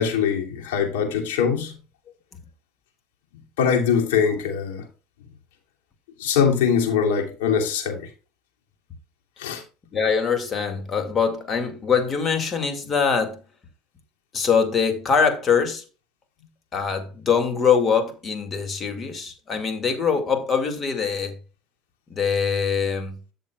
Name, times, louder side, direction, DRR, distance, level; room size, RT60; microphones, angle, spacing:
voice 1, 0.0-1.8 3.6-4.8 6.2-8.1 9.4-9.6, left 7 dB, 90° left, 2.7 m, -22 dB
voice 2, 9.9-13.4 14.3-15.8 16.7-21.4 22.1-23.2, left 6 dB, 35° left, 2.2 m, -23 dB
13.0 x 6.8 x 2.4 m
supercardioid pair, 100°, 0 cm